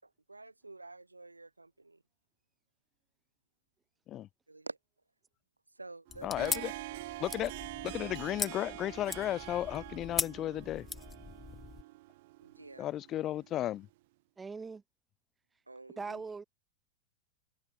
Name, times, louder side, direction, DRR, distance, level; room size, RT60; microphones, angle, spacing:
voice 1, 0.0-2.0 4.5-4.8 5.7-7.1 12.4-12.9 15.7-16.2, right 2 dB, 80° right, 6.5 m, -49 dB
sound 1, 6.1-11.8, left 5 dB, 15° left, 2.7 m, -40 dB
Harp, 6.1-13.8, right 20 dB, 50° right, 2.7 m, -46 dB
voice 2, 6.2-6.7 7.2-7.5 7.8-10.9 12.8-13.9, left 13 dB, 30° left, 0.4 m, -34 dB
voice 3, 14.4-14.8 16.0-16.4, right 4 dB, 15° right, 5.5 m, -40 dB
figure-of-eight pair, 90°, 0 cm